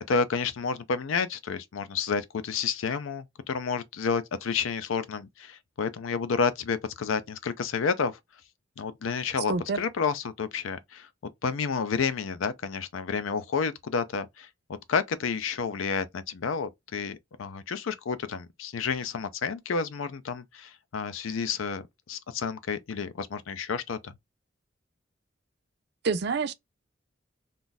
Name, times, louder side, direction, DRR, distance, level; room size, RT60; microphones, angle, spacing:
voice 1, 0.1-8.2 8.8-11.1 11.4-14.5 14.9-24.1, left 5 dB, 80° left, 0.5 m, -30 dB
voice 2, 9.5-9.8 26.0-26.5, right 4 dB, 55° right, 0.4 m, -27 dB
2.6 x 2.3 x 3.8 m
head